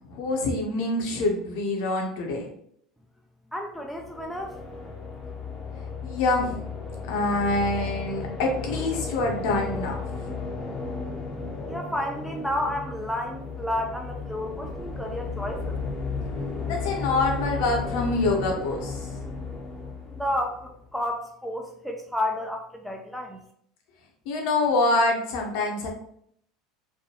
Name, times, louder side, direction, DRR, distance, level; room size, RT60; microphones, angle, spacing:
voice 1, 0.0-2.5 6.0-6.6 7.1-10.0 16.7-19.1 24.3-25.9, left 2 dB, 65° left, 1 dB, 0.8 m, -25 dB
voice 2, 3.5-4.5 11.7-15.8 20.2-23.4, left 1 dB, ahead, 1 dB, 0.4 m, -31 dB
sound 1, 3.8-20.8, left 4 dB, 25° left, 0.7 m, -34 dB
3.3 x 2.2 x 2.9 m, 0.67 s
hypercardioid pair, 80°, 3 cm